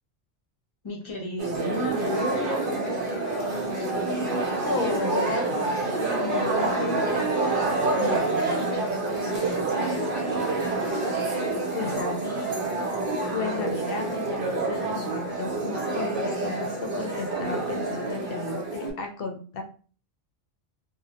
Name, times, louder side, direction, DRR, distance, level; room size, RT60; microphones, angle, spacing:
voice 1, 0.8-3.7 7.9-11.0 11.3-12.5, left 1 dB, 35° left, -2 dB, 0.7 m, -36 dB
sound 1, 1.4-18.9, right 2 dB, 60° right, 0.7 m, -27 dB
voice 2, 4.6-7.1 11.7-12.2 13.3-19.6, left 4 dB, 70° left, 4 dB, 0.7 m, -33 dB
2.2 x 2.0 x 2.7 m, 0.40 s
omnidirectional pair, 1.0 m